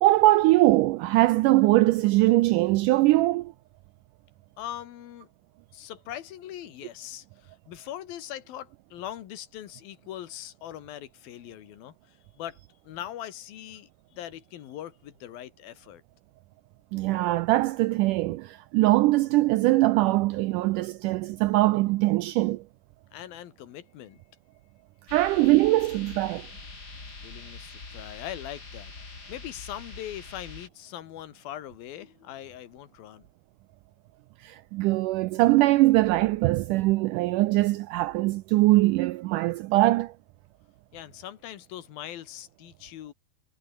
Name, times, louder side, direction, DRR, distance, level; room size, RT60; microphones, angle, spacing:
voice 1, 0.0-3.5 16.9-22.6 25.1-26.5 34.4-40.1, right 18 dB, 90° right, 1.8 m, -22 dB
voice 2, 4.6-5.3 5.7-16.0 23.1-24.2 27.2-33.3 40.9-43.1, left 12 dB, 75° left, 3.3 m, -41 dB
sound 1, 25.1-30.7, left 3 dB, 25° left, 4.0 m, -44 dB
omnidirectional pair, 4.2 m